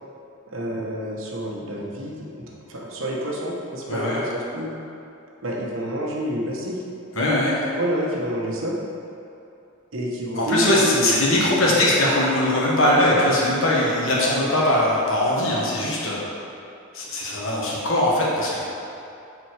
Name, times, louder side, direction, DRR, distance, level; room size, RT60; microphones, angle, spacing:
voice 1, 0.5-4.7 5.4-6.8 7.7-8.8 9.9-12.1, equal, 65° right, -3 dB, 1.2 m, -28 dB
voice 2, 3.9-4.3 7.1-7.6 10.4-16.2 16.9-18.6, left 1 dB, 70° left, -5 dB, 1.5 m, -21 dB
7.3 x 4.4 x 4.8 m, 2.7 s
head